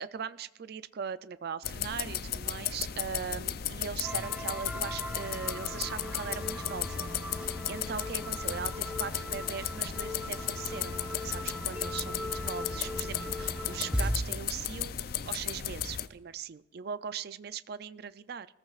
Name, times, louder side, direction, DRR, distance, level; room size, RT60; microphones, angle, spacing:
voice 1, 0.0-15.0 15.3-18.5, right 7 dB, 55° right, 15 dB, 0.4 m, -40 dB
sound 1, 1.6-16.1, left 9 dB, 55° left, 0.5 m, -35 dB
sound 2, 4.0-14.2, left 1 dB, 5° right, 1.0 m, -38 dB
19.5 x 14.5 x 2.4 m, 1.0 s
head